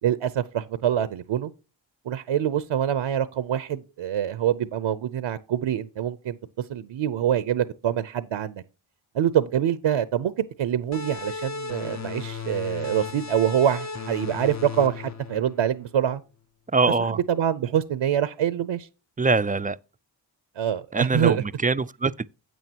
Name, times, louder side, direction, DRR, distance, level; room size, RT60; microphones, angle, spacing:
voice 1, 0.0-1.5 2.1-6.4 6.7-8.6 9.1-10.3 10.6-16.2 17.0-18.9 20.6-21.4, right 10 dB, 85° right, 0.7 m, -25 dB
sound 1, 10.9-16.2, left 5 dB, 35° left, 0.7 m, -36 dB
voice 2, 16.7-17.2 19.2-19.8 20.9-22.3, right 4 dB, 20° right, 0.3 m, -23 dB
9.3 x 8.4 x 2.8 m
cardioid pair, 60°, 47 cm